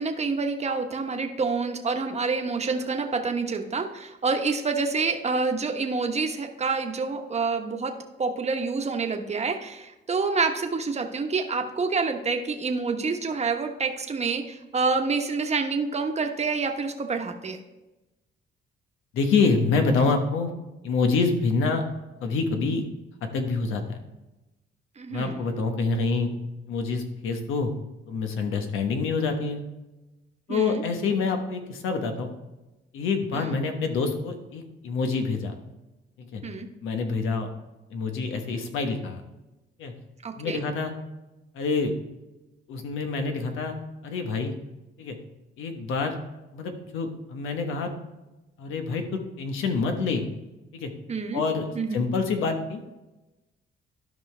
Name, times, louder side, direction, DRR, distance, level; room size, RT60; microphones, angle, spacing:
voice 1, 0.0-7.9 8.2-17.6 25.0-25.4 30.5-30.8 33.3-33.5 36.4-36.7 40.2-40.6 51.1-51.4 51.7-52.0, right 4 dB, 35° right, 4 dB, 1.1 m, -27 dB
voice 2, 19.1-20.5 20.8-21.8 22.2-22.8 23.3-24.0 25.1-26.3 26.7-27.7 28.1-29.6 30.5-32.3 32.9-35.5 36.2-36.4 36.8-37.5 37.9-39.2 39.8-39.9 40.3-40.9 41.5-41.9 42.7-43.8 44.0-44.5 45.0-45.2 45.6-46.2 46.5-47.9 48.6-50.2 50.7-50.9 51.3-52.8, left 4 dB, 90° left, 5 dB, 1.2 m, -26 dB
12.5 x 5.4 x 3.3 m, 1.0 s
cardioid pair, 90°, 20 cm